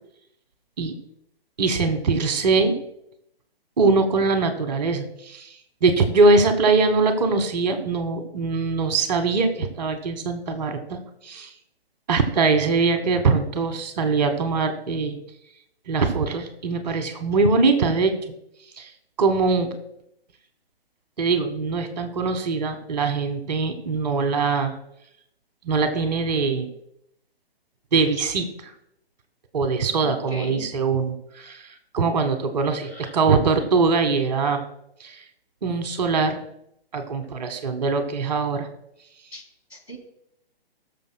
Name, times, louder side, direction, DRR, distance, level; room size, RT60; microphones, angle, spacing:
voice 1, 1.6-2.8 3.8-5.5 5.8-11.5 12.1-15.2 15.9-18.3 18.8-18.9 19.2-19.7 21.2-24.7 25.6-26.7 27.9-28.7 29.5-31.6 31.9-34.6 35.0-35.2 35.6-36.4 36.9-38.7, right 4 dB, 45° right, 7 dB, 1.3 m, -22 dB
voice 2, 30.0-30.7 32.8-33.1 39.3-39.4 39.7-40.0, equal, 85° left, 0 dB, 3.2 m, -37 dB
19.5 x 6.9 x 2.2 m, 0.77 s
figure-of-eight pair, 130°, 31 cm